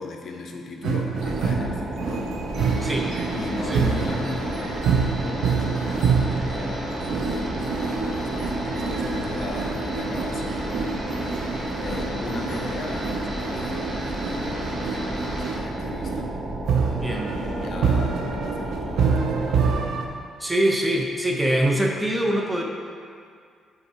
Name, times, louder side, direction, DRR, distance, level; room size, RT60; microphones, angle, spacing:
voice 1, 0.0-2.4 3.3-10.6 11.8-16.3 17.3-19.8, left 3 dB, 60° left, 2 dB, 0.6 m, -37 dB
sound 1, 0.8-20.1, right 5 dB, 75° right, 0.5 m, -27 dB
sound 2, 1.1-19.7, right 1 dB, 25° right, 1.2 m, -32 dB
sound 3, 2.5-15.6, right 1 dB, 40° right, 1.5 m, -34 dB
voice 2, 2.8-3.1 3.7-3.8 17.0-17.3 20.4-22.6, right 1 dB, 10° right, 0 dB, 0.8 m, -23 dB
5.3 x 4.0 x 4.8 m, 2.2 s
cardioid pair, 90°, 0 cm